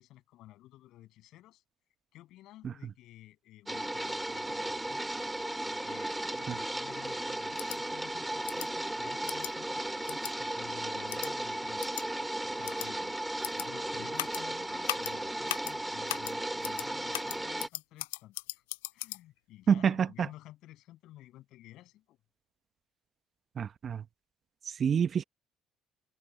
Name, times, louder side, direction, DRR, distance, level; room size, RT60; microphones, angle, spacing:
voice 1, 0.0-1.6 2.1-5.0 5.7-11.8 12.4-13.2 13.4-18.6 18.9-22.2, left 15 dB, 65° left, 7.5 m, -53 dB
sound 1, 3.7-17.7, right 1 dB, 10° right, 4.3 m, -35 dB
sound 2, 7.6-7.8 8.5-8.7 9.3-9.5 10.1-10.3 11.1-11.3 11.8-12.0 12.6-12.9 13.4-13.7 14.2-14.4 14.9-15.1 15.5-15.7 16.1-16.3 16.6-16.9 17.1-19.2, left 22 dB, 80° left, 0.3 m, -37 dB
voice 2, 19.7-20.3 23.6-24.0 24.6-25.2, right 7 dB, 45° right, 1.0 m, -27 dB
hypercardioid pair, 60°, 0 cm